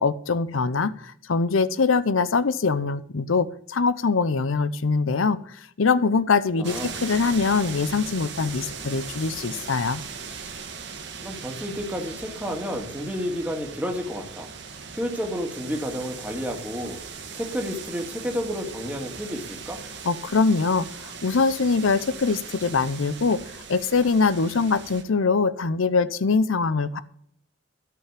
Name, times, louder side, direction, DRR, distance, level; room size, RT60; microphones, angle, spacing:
voice 1, 0.0-10.0 20.0-23.4 23.7-27.0, left 4 dB, 90° left, 15 dB, 0.7 m, -23 dB
voice 2, 6.6-7.0 11.2-14.5 15.0-17.0 17.3-19.8, equal, 10° right, 2 dB, 1.9 m, -31 dB
sound 1, 6.6-25.0, right 5 dB, 60° right, 1.7 m, -39 dB
13.0 x 5.8 x 7.4 m, 0.68 s
head